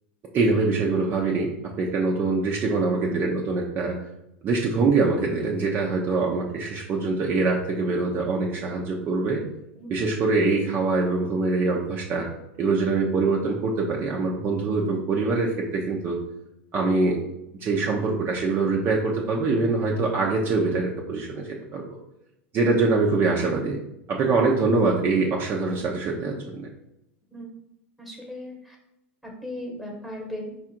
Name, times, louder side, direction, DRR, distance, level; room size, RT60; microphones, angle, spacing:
voice 1, 0.3-1.5 1.8-4.0 4.4-9.4 9.9-12.3 12.6-16.2 16.7-17.2 17.6-22.0 22.5-23.8 24.1-26.7, right 3 dB, 30° right, -2 dB, 0.7 m, -24 dB
voice 2, 28.0-28.8 29.2-30.7, left 1 dB, ahead, 0 dB, 1.3 m, -37 dB
4.9 x 2.5 x 4.4 m, 0.86 s
supercardioid pair, 125°, 7 cm